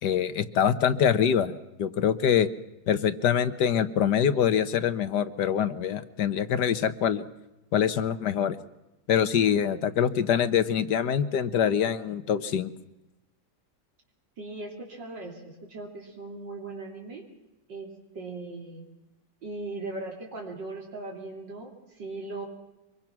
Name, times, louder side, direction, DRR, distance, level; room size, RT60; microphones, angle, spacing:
voice 1, 0.0-2.5 2.9-7.2 7.7-8.6 9.1-12.7, left 8 dB, 70° left, 13 dB, 1.6 m, -24 dB
voice 2, 14.4-17.2 17.7-18.8 19.4-22.5, right 2 dB, 85° right, 0 dB, 3.7 m, -39 dB
24.5 x 22.5 x 6.0 m, 0.98 s
omnidirectional pair, 1.9 m